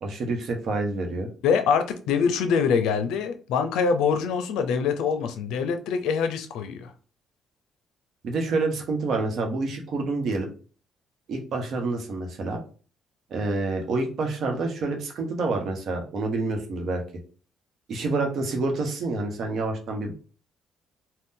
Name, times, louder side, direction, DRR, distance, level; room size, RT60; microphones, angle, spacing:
voice 1, 0.0-1.3 8.2-10.5 11.3-12.6 13.3-17.0 17.9-20.1, right 3 dB, 65° right, 0.9 m, -28 dB
voice 2, 1.4-6.9, left 6 dB, 85° left, 0.4 m, -24 dB
2.6 x 2.2 x 3.6 m
cardioid pair, 80°, 0 cm